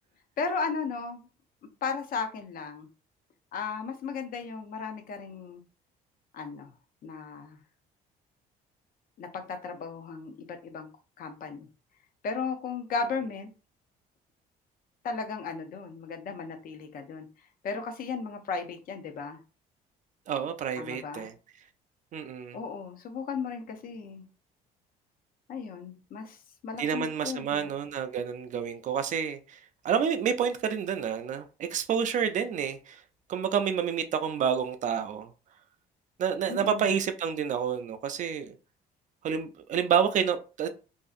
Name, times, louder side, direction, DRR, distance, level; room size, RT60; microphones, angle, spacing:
voice 1, 0.4-1.3 1.8-2.9 3.5-5.6 6.3-6.7 7.0-7.6 9.2-10.9 11.2-11.7 12.2-13.5 15.0-17.3 17.6-19.4 20.8-21.3 22.5-24.3 25.5-26.4 26.6-27.7 36.5-36.9, left 5 dB, 55° left, 0.6 m, -35 dB
voice 2, 20.3-21.3 22.1-22.6 26.8-29.6 29.8-33.0 33.3-35.3 36.2-38.5 39.2-40.7, right 7 dB, 45° right, 0.4 m, -29 dB
2.6 x 2.4 x 2.4 m
cardioid pair, 110°, 17 cm